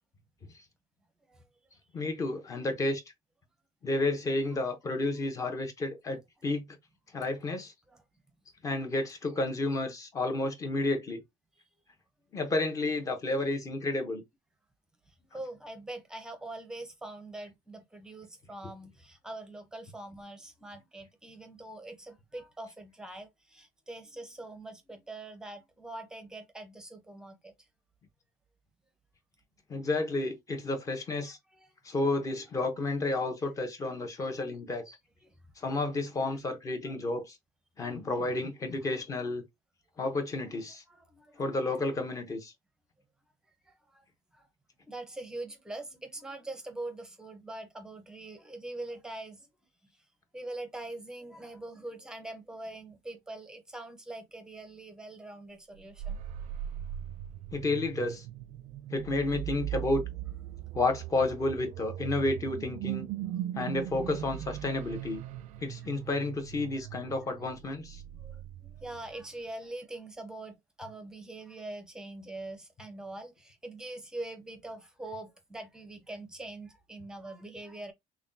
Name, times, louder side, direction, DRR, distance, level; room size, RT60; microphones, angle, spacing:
voice 1, 1.9-3.0 3.8-6.8 7.1-7.7 8.6-11.2 12.3-14.2 29.7-31.4 31.8-35.0 35.6-37.4 37.8-39.4 40.0-40.8 41.4-42.5 57.5-58.2 58.9-60.0 60.7-63.1 63.5-65.2 65.6-68.0, left 2 dB, 25° left, 0.9 m, -31 dB
voice 2, 15.1-27.5 31.2-31.7 35.2-35.3 36.9-37.0 40.9-41.4 43.7-44.0 44.3-44.5 44.9-49.5 50.3-56.2 68.1-77.9, right 2 dB, 5° right, 0.7 m, -43 dB
sound 1, 55.8-69.2, right 12 dB, 65° right, 0.4 m, -39 dB
5.7 x 2.3 x 2.7 m
cardioid pair, 175°, 13 cm